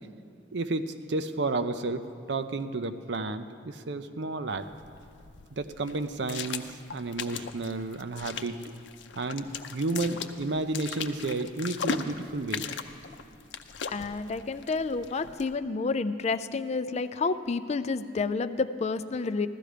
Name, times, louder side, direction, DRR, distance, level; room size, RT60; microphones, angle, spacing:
voice 1, 0.5-4.7 5.5-8.6 9.2-12.7, right 2 dB, 70° right, 10 dB, 0.6 m, -32 dB
sound 1, 4.5-15.5, left 6 dB, 85° left, 0.6 m, -39 dB
voice 2, 13.9-19.5, left 4 dB, 40° left, 12 dB, 0.4 m, -30 dB
15.5 x 12.5 x 5.0 m, 2.4 s
head